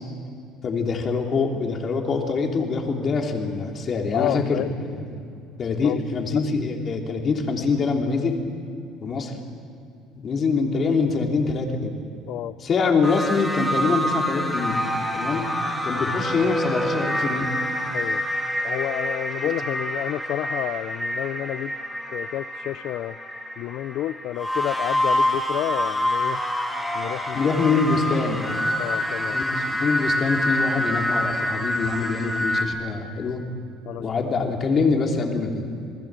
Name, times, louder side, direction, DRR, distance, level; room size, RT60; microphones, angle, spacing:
voice 1, 0.6-5.2 5.6-8.4 9.0-9.4 10.2-11.9 12.6-14.8 15.1-15.5 15.8-17.5 27.3-28.6 29.3-33.5 34.0-35.7, left 4 dB, 30° left, 2 dB, 3.2 m, -24 dB
voice 2, 4.1-4.7 5.8-6.0 12.3-12.6 15.3-15.4 17.9-18.2 18.6-21.7 22.1-23.2 23.6-26.4 26.9-27.5 28.1-28.2 28.8-29.4 33.8-34.0, left 13 dB, 60° left, 13 dB, 0.5 m, -30 dB
sound 1, 13.0-32.7, equal, 5° left, 2.7 m, -27 dB
28.5 x 20.0 x 7.6 m, 2.6 s
cardioid pair, 145°, 0 cm